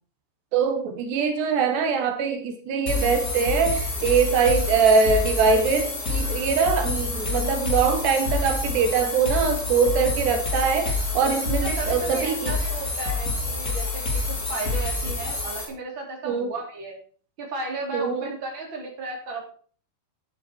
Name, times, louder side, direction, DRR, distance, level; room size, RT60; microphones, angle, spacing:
voice 1, 0.5-12.5 16.3-16.5 17.9-18.3, right 5 dB, 80° right, 6 dB, 3.7 m, -23 dB
sound 1, 2.9-15.7, left 3 dB, 25° left, 2.8 m, -27 dB
voice 2, 11.6-17.0 17.4-19.5, right 3 dB, 30° right, 0 dB, 4.2 m, -34 dB
12.5 x 10.0 x 4.6 m, 0.43 s
omnidirectional pair, 4.8 m